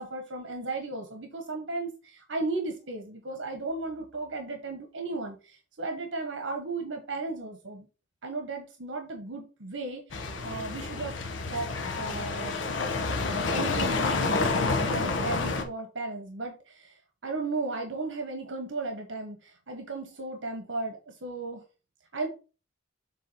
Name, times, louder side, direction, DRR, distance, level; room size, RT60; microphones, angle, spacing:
voice 1, 0.0-7.9 8.2-10.0 10.4-11.2 11.5-11.7 12.0-12.6 13.5-14.5 14.9-17.0 17.2-21.6 22.1-22.3, right 3 dB, 70° right, 3 dB, 1.3 m, -35 dB
sound 1, 10.1-15.6, left 3 dB, 70° left, 1.1 m, -29 dB
7.6 x 3.7 x 4.1 m, 0.33 s
head